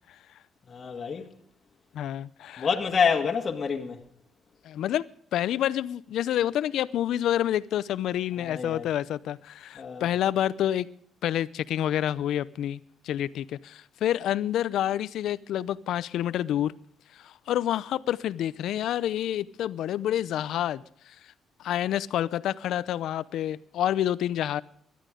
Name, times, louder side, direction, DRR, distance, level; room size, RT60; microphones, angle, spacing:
voice 1, 0.7-1.3 2.6-4.0 8.4-8.9 9.8-10.1, left 6 dB, 40° left, 2.0 m, -27 dB
voice 2, 1.9-2.7 4.6-5.0 5.3-10.9 11.2-16.7 17.2-20.8 21.6-24.6, left 11 dB, 80° left, 0.6 m, -28 dB
17.5 x 12.0 x 5.1 m
cardioid pair, 90°, 0 cm